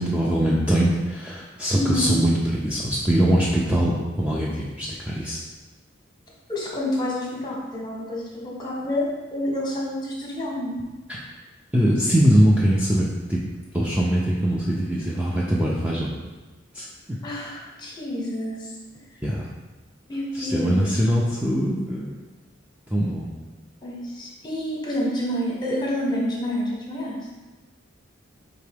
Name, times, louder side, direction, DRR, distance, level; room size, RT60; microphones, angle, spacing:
voice 1, 0.0-5.4 11.1-11.2 11.7-13.4 13.7-16.1 16.7-16.9 19.2-19.5 20.3-22.2 22.9-23.3, equal, 5° right, -6 dB, 0.3 m, -22 dB
voice 2, 1.7-2.2 6.5-9.1 9.3-10.8 17.2-18.7 20.1-20.9 23.8-27.2, left 1 dB, 20° left, -3 dB, 0.9 m, -28 dB
4.6 x 2.9 x 3.3 m, 1.2 s
head